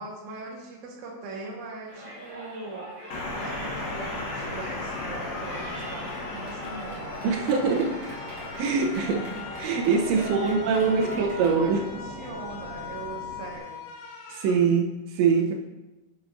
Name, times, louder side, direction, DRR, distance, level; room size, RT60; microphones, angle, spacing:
voice 1, 0.0-3.0 3.4-7.2 10.1-10.7 11.0-13.9, right 3 dB, 65° right, -1 dB, 2.1 m, -41 dB
Yell, 1.9-11.6, equal, 35° right, 3.5 m, -42 dB
sound 1, 3.0-14.5, left 4 dB, 90° left, 3.1 m, -43 dB
sound 2, 3.1-13.6, left 2 dB, 60° left, 1.8 m, -37 dB
voice 2, 7.2-8.1 8.6-9.3 9.6-11.8 14.3-15.5, right 5 dB, 90° right, 0 dB, 3.1 m, -23 dB
11.0 x 7.6 x 2.5 m, 1.1 s
omnidirectional pair, 5.0 m